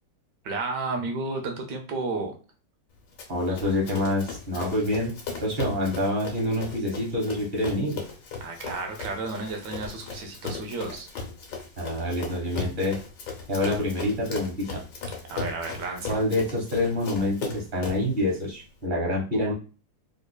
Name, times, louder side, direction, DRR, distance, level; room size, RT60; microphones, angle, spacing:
voice 1, 0.4-2.4 8.4-11.1 15.3-16.2 19.3-19.5, right 3 dB, 75° right, 3 dB, 1.3 m, -32 dB
Run, 3.2-18.1, left 4 dB, 75° left, 1.5 m, -37 dB
voice 2, 3.3-5.1 5.4-8.0 11.8-13.0 13.5-14.8 16.1-19.5, left 1 dB, 30° right, -2 dB, 1.1 m, -27 dB
3.8 x 3.0 x 2.2 m, 0.36 s
omnidirectional pair, 2.0 m